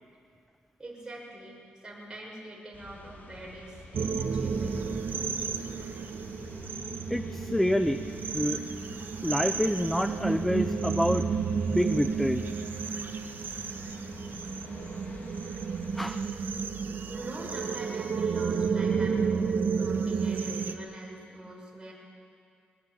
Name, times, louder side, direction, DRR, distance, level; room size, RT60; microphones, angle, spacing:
voice 1, 0.8-5.1 6.6-6.7 17.1-21.9, right 1 dB, 20° right, -3 dB, 6.7 m, -44 dB
sound 1, 2.7-16.0, left 2 dB, 55° left, 3.6 m, -47 dB
sound 2, 3.9-20.7, right 5 dB, 60° right, 1.5 m, -31 dB
voice 2, 7.1-8.0 8.3-8.6 9.2-11.3 11.5-12.4 15.9-16.2, equal, 5° left, 9 dB, 0.7 m, -27 dB
22.5 x 19.5 x 8.6 m, 2.3 s
wide cardioid pair, 115°, 4 cm